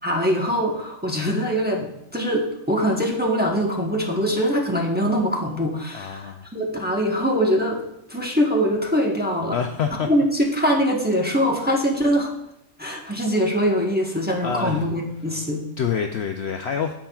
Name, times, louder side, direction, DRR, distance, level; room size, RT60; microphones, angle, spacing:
voice 1, 0.0-7.8 8.1-9.6 10.1-12.3 12.8-15.6, equal, 10° right, -2 dB, 1.0 m, -23 dB
voice 2, 5.9-6.5 9.5-10.1 14.4-14.9 15.8-16.9, left 7 dB, 65° left, 5 dB, 0.7 m, -26 dB
16.0 x 5.7 x 2.3 m, 0.81 s
omnidirectional pair, 1.4 m